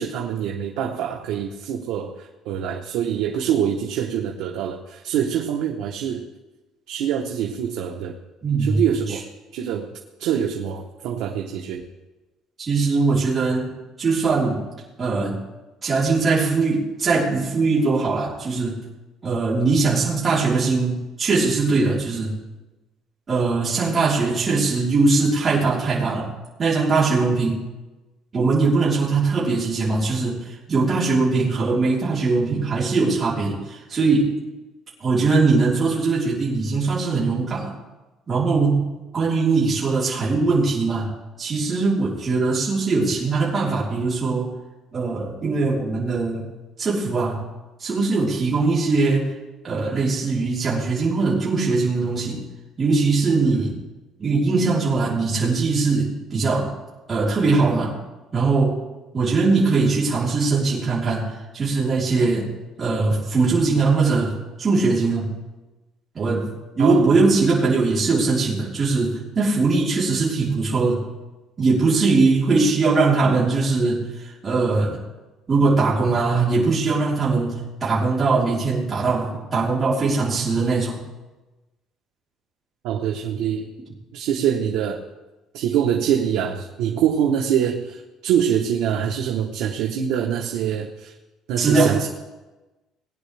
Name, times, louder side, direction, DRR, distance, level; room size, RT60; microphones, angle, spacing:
voice 1, 0.0-6.2 6.9-8.1 8.6-9.3 9.5-11.8 66.8-67.2 82.8-83.7 84.1-85.0 85.5-91.1 91.5-92.1, right 9 dB, 75° right, 2 dB, 0.9 m, -24 dB
voice 2, 8.4-8.8 12.6-13.7 14.0-14.6 15.0-15.4 15.8-18.8 19.2-22.3 23.3-26.3 26.6-27.6 28.3-34.4 35.0-37.7 38.3-38.9 39.1-41.1 41.4-44.5 44.9-46.5 46.8-47.4 47.8-49.3 49.6-52.5 52.8-53.8 54.2-56.7 57.1-57.9 58.3-58.8 59.1-62.5 62.8-65.3 66.1-66.5 66.7-71.1 71.6-75.0 75.5-81.0 91.6-91.9, right 3 dB, 25° right, -7 dB, 3.6 m, -21 dB
19.5 x 10.0 x 3.4 m, 1.1 s
cardioid pair, 160°, 0 cm